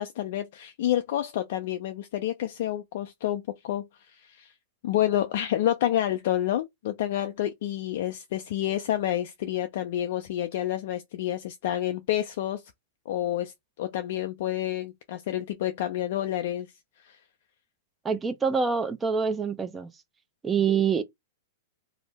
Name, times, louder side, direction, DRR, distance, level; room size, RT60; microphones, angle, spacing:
voice 1, 0.0-3.9 4.2-4.5 4.8-12.6 13.1-13.5 13.8-16.7 17.0-17.2, left 12 dB, 60° left, 0.3 m, -29 dB
voice 2, 18.0-19.9 20.4-21.0, right 6 dB, 15° right, 0.6 m, -25 dB
2.6 x 2.0 x 3.4 m
hypercardioid pair, 120°, 0 cm